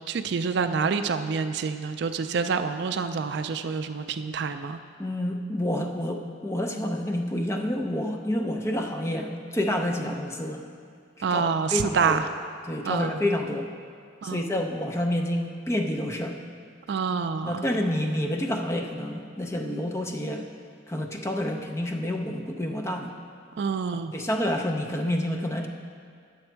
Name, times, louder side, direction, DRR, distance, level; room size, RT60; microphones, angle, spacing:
voice 1, 0.1-4.8 11.2-12.2 12.8-13.2 14.2-14.5 16.9-17.7 23.6-24.1, right 5 dB, 60° right, 9 dB, 0.3 m, -27 dB
voice 2, 5.0-10.7 11.3-11.4 11.7-12.2 12.7-13.7 14.2-16.4 17.5-20.5 20.9-23.1 24.1-25.7, left 1 dB, 15° left, 2 dB, 0.5 m, -28 dB
9.6 x 7.0 x 4.5 m, 2.2 s
head